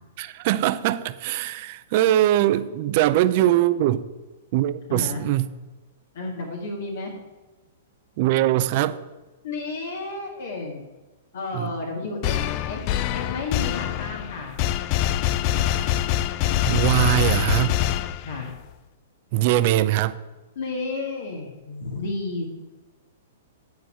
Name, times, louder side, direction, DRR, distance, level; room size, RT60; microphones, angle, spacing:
voice 1, 0.2-4.0 4.5-5.4 8.2-9.0 11.5-11.7 15.4-16.0 16.6-17.8 19.3-20.2, right 13 dB, 50° right, 14 dB, 0.5 m, -22 dB
voice 2, 4.9-5.2 6.1-7.2 9.4-10.8 11.3-12.4 12.7-12.8 13.1-14.6 18.2-18.5 20.6-22.5, left 3 dB, 70° left, 0 dB, 1.8 m, -31 dB
sound 1, 12.2-18.6, left 12 dB, 40° left, 0.4 m, -24 dB
9.3 x 4.7 x 7.7 m, 1.1 s
hypercardioid pair, 135°, 0 cm